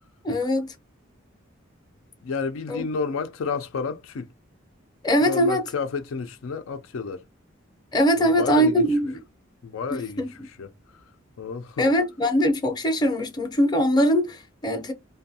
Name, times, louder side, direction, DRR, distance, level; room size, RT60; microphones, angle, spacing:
voice 1, 0.2-0.7 2.7-2.8 5.0-5.6 7.9-9.2 9.9-10.3 11.8-14.9, equal, 20° left, 0.6 m, -22 dB
voice 2, 2.2-4.3 5.2-7.2 8.2-8.8 9.6-11.0 11.4-11.9, left 5 dB, 85° left, 0.4 m, -31 dB
2.5 x 2.2 x 2.6 m
head